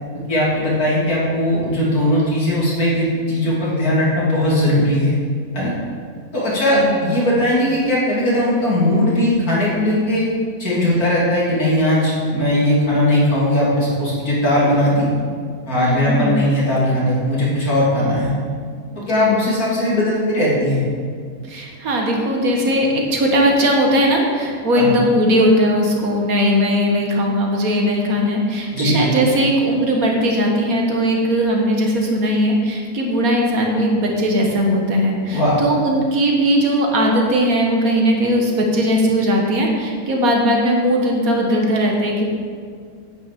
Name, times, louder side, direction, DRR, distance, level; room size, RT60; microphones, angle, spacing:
voice 1, 0.3-5.2 5.5-5.7 6.3-10.3 10.6-15.1 15.7-18.3 19.1-20.8 24.7-24.9 28.7-29.0 35.3-35.6, left 1 dB, 70° left, -6 dB, 3.5 m, -18 dB
voice 2, 15.7-16.4 18.9-19.4 21.4-42.3, equal, 65° right, 0 dB, 2.0 m, -18 dB
9.4 x 9.1 x 5.3 m, 2.1 s
omnidirectional pair, 1.6 m